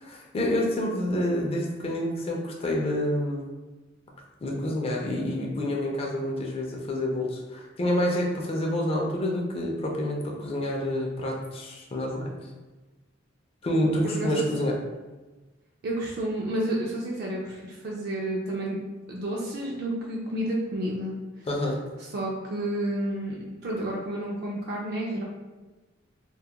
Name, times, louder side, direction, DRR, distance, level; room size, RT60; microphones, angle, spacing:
voice 1, 0.0-3.5 4.4-12.2 13.6-14.8 21.5-21.8, left 1 dB, 30° left, -1 dB, 0.4 m, -28 dB
voice 2, 15.8-18.8 19.1-21.2 22.0-25.2, right 1 dB, 55° right, -2 dB, 0.4 m, -30 dB
2.3 x 2.1 x 2.8 m, 1.2 s
head